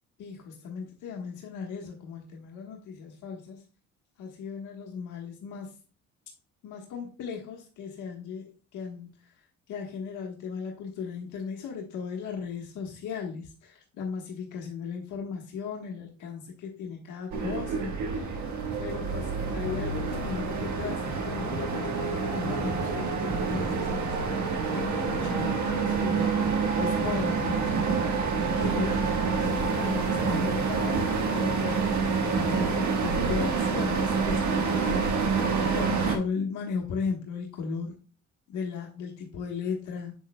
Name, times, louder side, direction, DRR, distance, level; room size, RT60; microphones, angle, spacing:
voice 1, 0.2-3.6 4.2-5.7 6.6-9.3 9.7-18.5 18.8-24.2 24.7-26.3 26.8-27.9 28.6-29.0 29.3-31.9 32.5-35.4 35.7-37.9 38.5-40.1, left 6 dB, 90° left, 0 dB, 1.3 m, -36 dB
sound 1, 17.3-36.2, right 5 dB, 70° right, 1.5 m, -27 dB
7.7 x 6.4 x 2.2 m, 0.37 s
cardioid pair, 90°, 30 cm